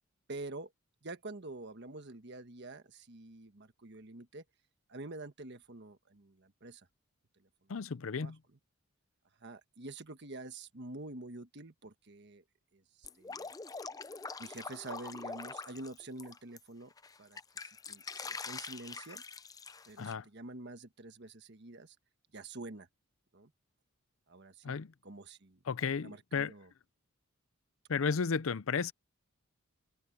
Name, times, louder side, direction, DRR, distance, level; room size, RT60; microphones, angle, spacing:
voice 1, 0.3-0.7 1.0-4.4 4.9-6.8 8.1-8.3 9.4-12.4 13.0-13.5 14.4-16.9 17.2-17.4 17.9-19.2 19.9-21.9 22.3-22.9 23.3-23.5 24.3-24.7 25.0-25.6 26.0-26.7, right 2 dB, 50° right, 1.4 m, -47 dB
voice 2, 7.7-8.4 20.0-20.3 24.6-24.9 25.6-26.5 27.9-28.9, left 5 dB, 70° left, 0.6 m, -33 dB
Drip, 13.0-16.6 17.0-20.1, left 4 dB, 15° left, 0.5 m, -44 dB
head